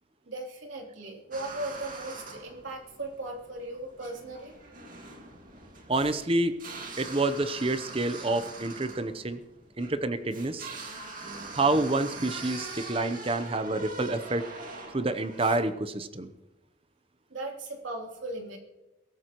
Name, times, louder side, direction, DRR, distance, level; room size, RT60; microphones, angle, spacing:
voice 1, 0.3-4.5 17.3-18.6, right 2 dB, 85° right, 0 dB, 3.2 m, -38 dB
sound 1, 1.3-15.6, right 3 dB, 45° right, 2.2 m, -43 dB
voice 2, 5.9-6.6 7.0-9.4 9.8-10.7 11.5-14.5 14.9-16.3, right 2 dB, 30° right, 10 dB, 0.8 m, -28 dB
22.5 x 13.5 x 3.0 m, 1.0 s
head